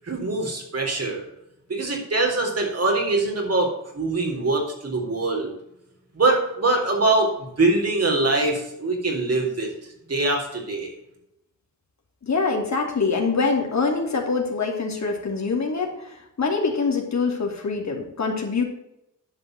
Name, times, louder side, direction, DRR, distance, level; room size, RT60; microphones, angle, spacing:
voice 1, 0.0-1.2 1.7-3.7 3.9-5.5 6.1-7.3 7.6-9.7 10.1-10.9, right 2 dB, 45° right, 1 dB, 4.0 m, -23 dB
voice 2, 12.2-18.6, left 4 dB, 55° left, 1 dB, 2.9 m, -24 dB
10.5 x 5.6 x 7.7 m, 0.83 s
cardioid pair, 60°, 33 cm